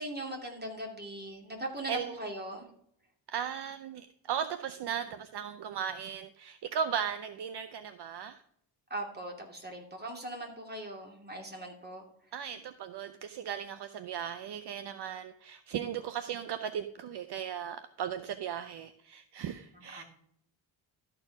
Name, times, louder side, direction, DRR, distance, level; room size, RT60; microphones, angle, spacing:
voice 1, 0.0-2.7 8.9-12.0 19.7-20.0, right 1 dB, 20° right, 1 dB, 2.6 m, -40 dB
voice 2, 3.3-8.4 12.3-20.0, right 8 dB, 55° right, 11 dB, 0.7 m, -37 dB
13.0 x 4.6 x 4.8 m, 0.69 s
cardioid pair, 85°, 47 cm